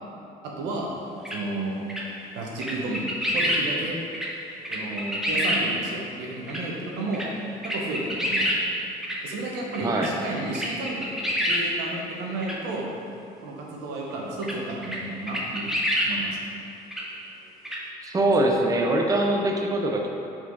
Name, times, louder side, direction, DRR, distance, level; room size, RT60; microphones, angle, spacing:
voice 1, 0.4-0.9 1.3-1.9 2.3-3.1 3.3-4.0 4.7-7.3 7.6-8.7 9.2-11.2 11.5-12.9 13.4-16.4, right 2 dB, 90° right, -2 dB, 1.2 m, -32 dB
sound 1, 1.2-1.4 1.9-2.0 2.6-3.6 4.1-4.3 4.6-5.6 6.5-6.6 7.1-7.3 7.6-8.6 9.0-9.2 9.7-10.1 10.4-11.6 12.4-12.5 14.4-14.5 14.8-15.0 15.3-16.1 16.9-17.0 17.6-17.8, equal, ahead, 1.0 m, -26 dB
voice 2, 9.8-10.1 18.0-20.1, right 1 dB, 20° right, 1 dB, 0.6 m, -23 dB
5.0 x 4.4 x 5.3 m, 2.7 s
cardioid pair, 110°, 17 cm